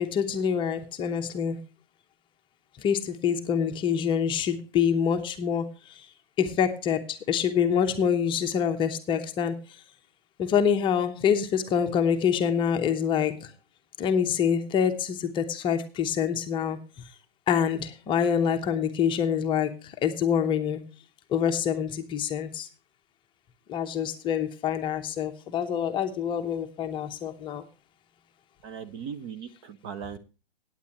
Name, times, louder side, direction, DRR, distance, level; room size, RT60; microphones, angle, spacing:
voice 1, 0.0-1.6 2.8-5.7 6.0-6.1 6.4-9.6 10.4-13.5 14.0-16.8 17.5-20.8 21.3-22.7 23.7-27.6, left 8 dB, 15° left, 6 dB, 0.8 m, -26 dB
voice 2, 28.6-30.2, right 7 dB, 30° right, 11 dB, 0.7 m, -38 dB
16.5 x 9.0 x 2.9 m, 0.32 s
hypercardioid pair, 135°, 30 cm